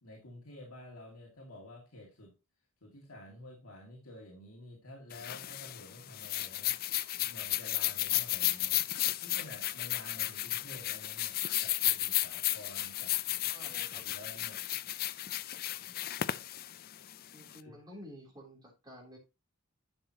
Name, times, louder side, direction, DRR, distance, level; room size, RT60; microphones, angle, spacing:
voice 1, 0.0-2.3 2.8-6.7 7.2-8.8 9.2-13.2 14.0-14.6 17.6-17.8, left 1 dB, 80° left, -1 dB, 2.2 m, -50 dB
sound 1, 5.1-17.6, left 15 dB, 45° left, 0.4 m, -34 dB
voice 2, 13.5-14.1 17.3-19.2, equal, 20° right, -1 dB, 3.1 m, -51 dB
11.0 x 6.0 x 2.8 m, 0.26 s
head